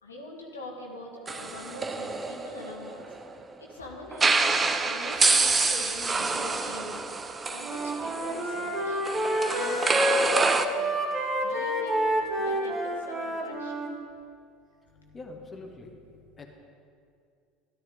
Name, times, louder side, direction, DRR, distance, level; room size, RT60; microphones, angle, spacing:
voice 1, 0.0-3.1 3.6-4.5 4.8-7.0 7.5-9.0 9.5-13.8 14.9-15.2 16.1-16.4, left 1 dB, 80° left, 0 dB, 1.6 m, -43 dB
sound 1, 1.3-3.3 4.1-10.7, right 3 dB, 20° right, 0.7 m, -27 dB
Wind instrument woodwind instrument, 7.6-13.9, right 1 dB, 35° right, 2.4 m, -28 dB
voice 2, 15.1-15.9 16.4-16.5, left 2 dB, 25° left, 2 dB, 1.3 m, -43 dB
13.0 x 11.5 x 3.9 m, 2.3 s
figure-of-eight pair, 70°, 0 cm